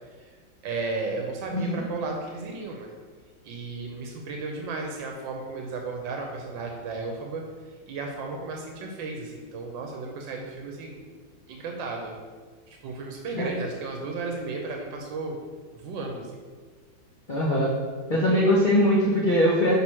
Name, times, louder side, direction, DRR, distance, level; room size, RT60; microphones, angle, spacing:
voice 1, 0.6-2.9 3.4-7.4 7.9-11.0 11.5-12.2 12.7-15.4 15.7-16.4, right 3 dB, 80° right, 1 dB, 1.4 m, -34 dB
voice 2, 17.3-17.7 18.1-19.8, equal, 50° left, -5 dB, 0.5 m, -21 dB
6.0 x 3.8 x 4.3 m, 1.5 s
omnidirectional pair, 2.0 m